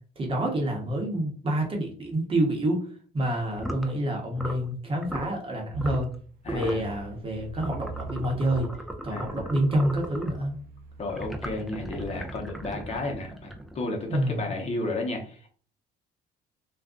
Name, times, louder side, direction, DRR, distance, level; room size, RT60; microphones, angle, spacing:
voice 1, 0.2-2.9 3.1-6.1 6.5-8.7 9.0-10.6 14.1-14.5, right 1 dB, 30° right, 1 dB, 1.0 m, -27 dB
sound 1, 3.5-3.9 4.3-4.7 5.0-5.3 5.8-6.1 6.4-6.9 7.6-10.4 11.1-13.9, right 1 dB, ahead, 0.5 m, -37 dB
sound 2, 5.7-8.6 9.2-12.4, right 3 dB, 60° right, 0.5 m, -43 dB
voice 2, 6.4-6.9 9.1-9.5 11.0-15.5, left 2 dB, 40° left, 1 dB, 0.8 m, -33 dB
2.4 x 2.2 x 3.6 m, 0.43 s
cardioid pair, 110°, 17 cm